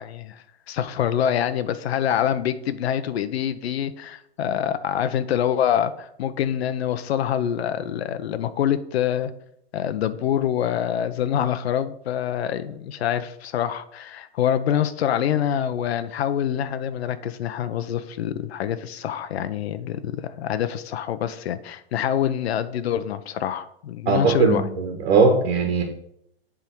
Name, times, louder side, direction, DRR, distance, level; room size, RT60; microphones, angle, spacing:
voice 1, 0.0-9.3 9.7-24.6, left 9 dB, 75° left, 12 dB, 0.9 m, -25 dB
voice 2, 24.0-25.8, right 4 dB, 70° right, 3 dB, 1.6 m, -19 dB
10.0 x 3.7 x 4.6 m, 0.73 s
hypercardioid pair, 140°, 32 cm